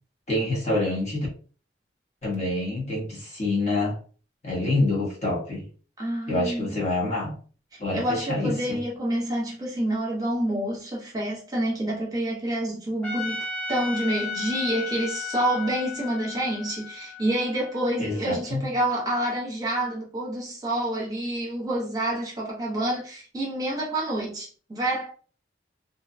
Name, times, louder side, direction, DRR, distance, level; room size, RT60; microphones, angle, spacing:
voice 1, 0.3-1.3 2.2-4.0 4.4-5.7 6.3-7.4 7.8-8.8 18.0-18.6, left 2 dB, 35° left, 0.8 m, -26 dB
voice 2, 6.0-6.8 7.9-25.1, right 1 dB, 20° right, 0.8 m, -28 dB
Trumpet, 13.0-18.2, left 5 dB, 5° left, 0.5 m, -35 dB
2.6 x 2.2 x 2.5 m
head